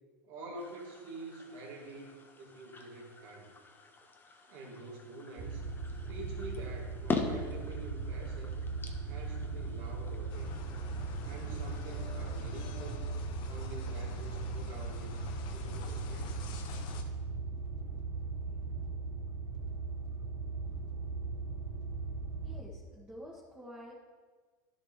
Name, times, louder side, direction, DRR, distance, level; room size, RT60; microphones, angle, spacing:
voice 1, 0.3-3.5 4.5-5.7 6.1-8.5 9.0-10.5 11.2-13.1 13.4-16.4 18.4-18.5, right 2 dB, 55° right, -2 dB, 2.5 m, -47 dB
sound 1, 0.6-12.5, left 4 dB, 20° left, 1.0 m, -43 dB
sound 2, 5.4-22.6, right 4 dB, 40° right, 1.0 m, -38 dB
sound 3, 10.3-17.0, left 4 dB, 50° left, 1.0 m, -46 dB
voice 2, 22.4-23.9, equal, 10° right, -6 dB, 1.8 m, -49 dB
11.5 x 7.1 x 3.2 m, 1.5 s
hypercardioid pair, 105°, 11 cm